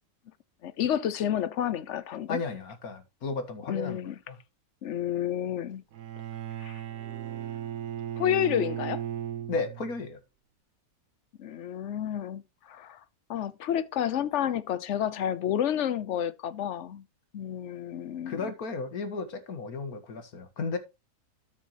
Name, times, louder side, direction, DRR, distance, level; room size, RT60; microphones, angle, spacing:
voice 1, 0.6-2.4 3.7-4.2 4.8-5.8 6.6-6.8 8.2-9.0 11.4-13.0 13.3-17.0 17.3-18.5, left 10 dB, 55° left, 1.0 m, -30 dB
voice 2, 2.3-4.0 4.3-4.4 9.5-10.2 18.3-20.8, left 4 dB, 75° left, 2.0 m, -34 dB
Bowed string instrument, 5.9-10.0, right 10 dB, 85° right, 1.4 m, -36 dB
13.0 x 6.5 x 3.0 m
omnidirectional pair, 1.6 m